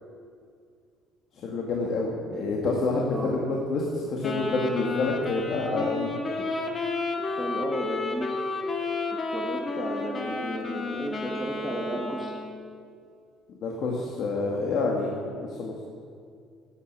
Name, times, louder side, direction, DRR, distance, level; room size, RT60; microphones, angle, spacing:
voice 1, 1.4-6.1 13.6-15.1 15.4-15.7, left 3 dB, 55° left, -2 dB, 2.0 m, -28 dB
Wind instrument woodwind instrument, 4.2-12.7, left 3 dB, 30° left, 1.9 m, -32 dB
voice 2, 7.3-8.4 9.1-12.3, equal, 5° left, -1 dB, 1.7 m, -33 dB
12.0 x 9.5 x 8.9 m, 2.3 s
cardioid pair, 120°, 0 cm